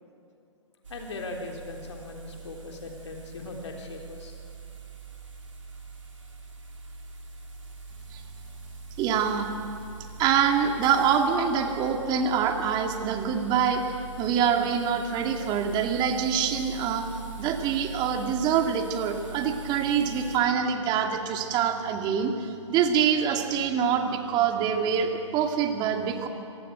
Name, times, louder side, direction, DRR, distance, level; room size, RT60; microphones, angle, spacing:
sound 1, 0.8-20.4, right 4 dB, 80° right, 3.6 m, -43 dB
voice 1, 0.9-4.3, left 2 dB, 65° left, 1 dB, 3.8 m, -39 dB
voice 2, 9.0-9.5 10.2-17.1 17.4-26.3, right 7 dB, 30° right, 4 dB, 2.4 m, -25 dB
26.0 x 18.5 x 8.0 m, 2.7 s
figure-of-eight pair, 120°, 16 cm